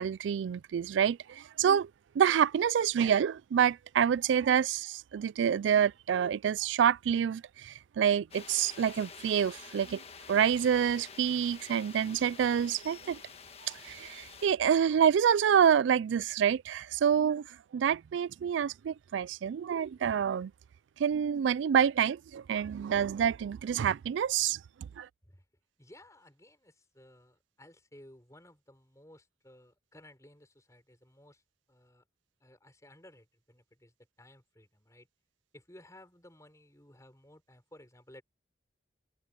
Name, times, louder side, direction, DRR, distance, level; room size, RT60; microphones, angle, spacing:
voice 1, 0.0-1.9 2.2-10.0 10.3-13.2 13.6-17.5 17.7-20.5 21.0-24.6 25.0-25.1, right 8 dB, 85° right, 0.3 m, -27 dB
sound 1, 8.3-14.5, left 5 dB, 35° left, 1.5 m, -49 dB
voice 2, 25.8-31.4 31.7-32.0 32.4-35.1 35.5-38.2, left 1 dB, 15° left, 6.3 m, -57 dB
head